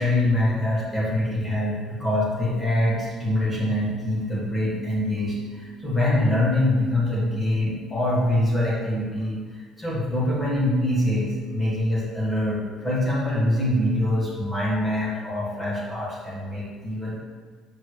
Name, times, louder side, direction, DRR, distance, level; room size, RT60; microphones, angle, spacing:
voice 1, 0.0-17.2, left 1 dB, 15° left, -6 dB, 1.6 m, -24 dB
6.6 x 3.9 x 6.3 m, 1.5 s
cardioid pair, 175°, 0 cm